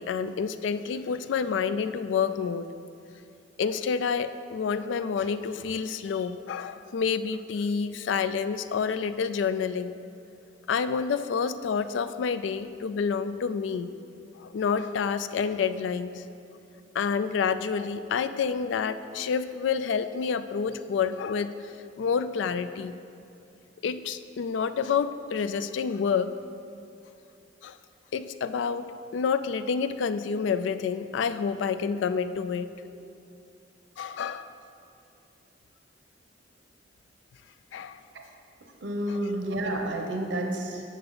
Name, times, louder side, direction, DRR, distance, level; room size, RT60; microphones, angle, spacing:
voice 1, 0.0-2.7 3.6-9.9 10.7-13.9 14.3-16.2 16.9-21.7 22.0-22.9 23.8-26.3 27.6-27.8 28.1-28.9 29.1-32.7 34.0-34.5 37.7-38.0 39.1-39.2, left 6 dB, 85° left, 11 dB, 0.3 m, -28 dB
voice 2, 38.8-40.8, right 1 dB, 75° right, 2 dB, 0.8 m, -30 dB
7.7 x 6.6 x 3.9 m, 2.6 s
head